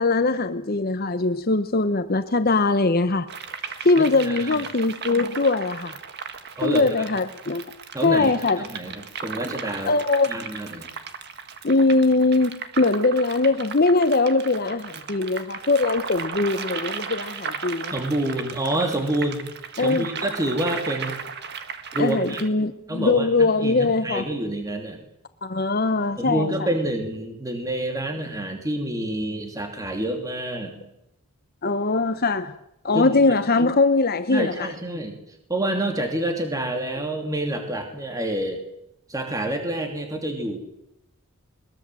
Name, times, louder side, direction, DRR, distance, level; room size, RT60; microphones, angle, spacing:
voice 1, 0.0-3.3 3.8-6.0 6.6-7.7 8.0-8.6 9.8-10.3 11.6-17.9 19.8-20.1 22.0-24.2 25.4-26.7 31.6-32.5 32.8-34.7, left 3 dB, 45° left, 10 dB, 1.0 m, -21 dB
sound 1, 3.3-22.5, right 6 dB, 50° right, 1.7 m, -36 dB
voice 2, 4.0-4.6 6.6-7.0 7.9-9.9 10.3-10.9 17.9-19.4 19.8-21.2 21.9-22.4 22.9-25.0 26.2-30.9 32.9-33.1 34.3-35.2 35.5-38.6 39.1-40.6, right 1 dB, 15° right, 4 dB, 2.7 m, -28 dB
22.0 x 21.5 x 7.7 m, 0.82 s
head